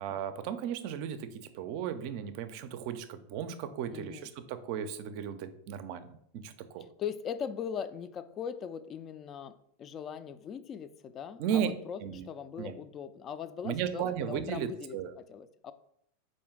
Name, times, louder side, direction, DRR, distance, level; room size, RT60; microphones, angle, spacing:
voice 1, 0.0-6.9 11.4-11.7 12.0-12.3 12.6-12.7 13.6-15.1, right 9 dB, 55° right, 11 dB, 0.4 m, -35 dB
voice 2, 3.9-4.3 7.0-9.5 9.8-15.7, left 7 dB, 35° left, 13 dB, 0.3 m, -40 dB
4.3 x 2.6 x 3.6 m, 0.70 s
hypercardioid pair, 95°, 0 cm